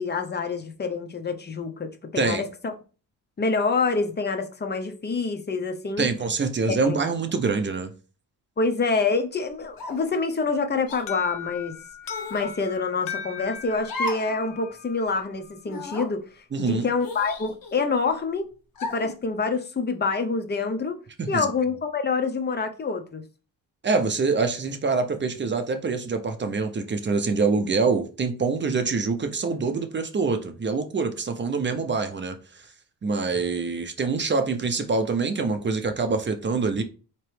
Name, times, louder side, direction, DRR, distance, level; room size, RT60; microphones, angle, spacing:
voice 1, 0.0-2.7 3.4-6.1 6.7-7.0 8.6-11.8 12.3-18.5 18.8-21.0 21.3-23.2, left 4 dB, 25° left, 0.6 m, -27 dB
voice 2, 6.0-7.9 16.5-16.9 21.2-21.5 23.8-32.4 33.0-36.8, right 4 dB, 30° right, 0.6 m, -25 dB
sound 1, 9.8-10.2 10.9-11.0 12.1-12.5 13.8-14.3 14.7-14.8 15.6-16.1 17.0-17.9 18.8-19.2, left 2 dB, 60° left, 1.3 m, -34 dB
Alarm, 11.1-15.9, left 7 dB, 85° left, 0.8 m, -38 dB
4.3 x 3.0 x 3.2 m
cardioid pair, 120°, 39 cm